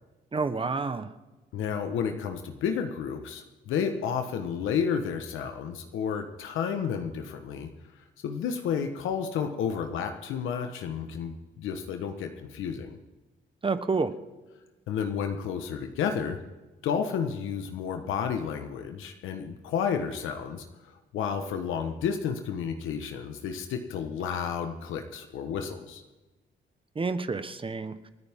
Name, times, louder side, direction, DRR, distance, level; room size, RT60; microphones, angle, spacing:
voice 1, 0.3-1.1 13.6-14.1 26.9-27.9, right 4 dB, 25° right, 11 dB, 1.2 m, -29 dB
voice 2, 1.5-7.7 8.2-13.0 14.9-16.4 16.8-20.6 21.1-26.0, left 7 dB, 85° left, 6 dB, 1.3 m, -31 dB
28.5 x 9.7 x 3.7 m, 1.1 s
cardioid pair, 90°, 20 cm